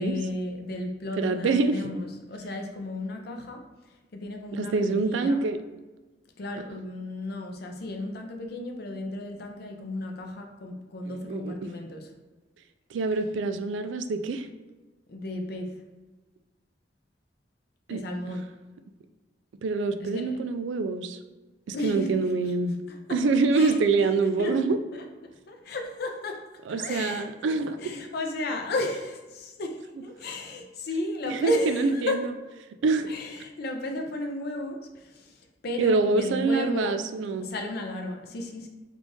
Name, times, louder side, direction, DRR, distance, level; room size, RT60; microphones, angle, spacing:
voice 1, 0.0-3.6 4.1-5.4 6.4-12.1 15.1-15.8 17.9-18.5 20.0-20.4 21.7-22.3 22.9-23.8 24.4-24.6 24.9-25.0 25.5-26.4 26.7-32.2 33.1-37.0 37.4-38.7, left 1 dB, 60° left, 4 dB, 0.5 m, -34 dB
voice 2, 1.2-1.8 4.5-5.6 6.7-6.8 11.1-11.6 12.9-14.5 17.9-18.0 19.6-21.2 21.7-22.8 23.1-24.8 26.7-28.0 31.2-32.2 32.8-33.2 35.8-37.5, right 3 dB, 85° right, 9 dB, 0.3 m, -25 dB
3.6 x 2.4 x 3.7 m, 1.2 s
head